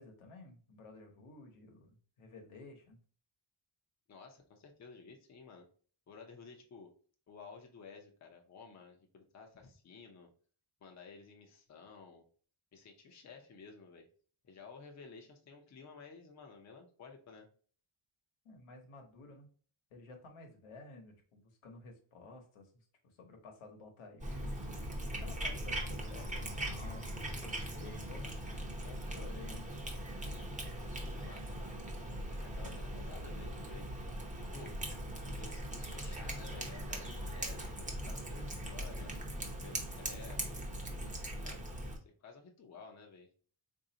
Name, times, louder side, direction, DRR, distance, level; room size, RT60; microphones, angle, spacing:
voice 1, 0.0-3.0 18.4-19.5 19.9-24.6 25.2-28.4 28.8-29.7, left 3 dB, 85° left, 3 dB, 1.0 m, -53 dB
voice 2, 4.1-5.7 6.1-6.9 7.3-10.3 10.8-12.2 12.7-14.1 14.4-17.5 31.1-32.1 32.4-33.9 34.4-34.8 35.2-39.1 39.6-40.6 41.2-41.7 42.1-43.3, left 5 dB, 35° left, 3 dB, 0.6 m, -54 dB
Cat, 24.2-42.0, right 1 dB, 15° right, 0.7 m, -40 dB
4.0 x 2.6 x 2.7 m, 0.44 s
wide cardioid pair, 150°, 48 cm